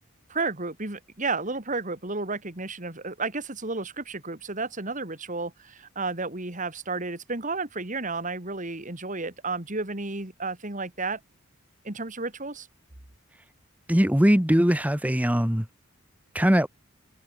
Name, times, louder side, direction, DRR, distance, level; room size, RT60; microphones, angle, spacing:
voice 1, 0.3-11.2 11.8-12.7, right 3 dB, 40° right, 2.7 m, -32 dB
voice 2, 13.9-15.6 16.3-16.7, equal, 5° right, 1.3 m, -21 dB
head